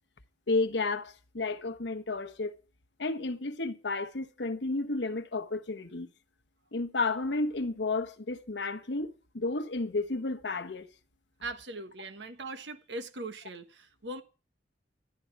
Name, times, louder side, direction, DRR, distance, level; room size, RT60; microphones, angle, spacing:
voice 1, 0.5-2.6 3.0-6.1 6.7-10.9, left 3 dB, 80° left, 1.1 m, -32 dB
voice 2, 11.4-14.2, right 2 dB, 80° right, 1.2 m, -40 dB
13.0 x 11.5 x 4.6 m
head